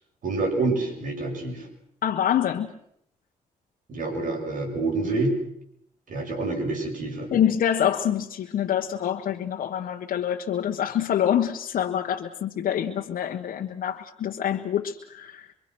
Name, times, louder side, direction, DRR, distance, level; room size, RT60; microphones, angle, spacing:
voice 1, 0.2-1.7 3.9-5.4 6.1-7.3, right 3 dB, 70° right, 7.5 m, -27 dB
voice 2, 2.0-2.7 7.3-15.5, left 9 dB, 75° left, 1.3 m, -26 dB
25.0 x 24.5 x 6.2 m
cardioid pair, 80°, 14 cm